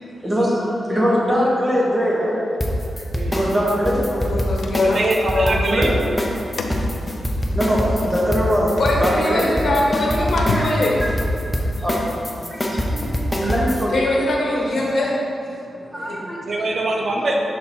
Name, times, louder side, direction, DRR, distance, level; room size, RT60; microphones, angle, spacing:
voice 1, 0.2-2.3 2.9-4.0 5.7-5.9 7.5-8.7 9.0-9.6 10.5-10.7 11.0-11.1 11.5-14.0 15.7-16.4, equal, 15° right, -5 dB, 1.3 m, -22 dB
sound 1, 2.6-13.9, equal, 15° left, 0.6 m, -24 dB
voice 2, 4.1-5.0 5.3-5.6 8.8-11.0 13.9-15.1 16.0-16.2, left 1 dB, 60° left, -3 dB, 1.1 m, -22 dB
sound 2, 4.2-5.6 6.1-11.5, left 3 dB, 85° left, 0.4 m, -32 dB
voice 3, 4.8-6.0 13.4-13.7 16.5-17.4, right 2 dB, 55° right, 0 dB, 0.6 m, -23 dB
5.9 x 3.7 x 4.4 m, 2.6 s
wide cardioid pair, 120°, 0 cm